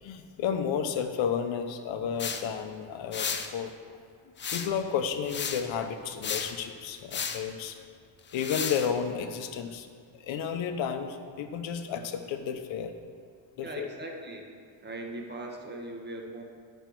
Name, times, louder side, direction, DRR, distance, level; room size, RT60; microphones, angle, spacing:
voice 1, 0.0-3.7 4.5-7.9 8.3-9.9 10.2-12.9 13.6-13.9, left 7 dB, 90° left, 7 dB, 0.8 m, -32 dB
sound 1, 2.2-2.4 3.1-3.5 4.4-4.8 5.3-5.7 6.2-6.6 7.1-7.4 8.3-8.9, left 6 dB, 25° left, 0.4 m, -33 dB
voice 2, 13.6-14.5 14.8-16.4, right 1 dB, 25° right, 2 dB, 0.9 m, -39 dB
10.5 x 5.5 x 4.5 m, 2.1 s
cardioid pair, 160°, 45 cm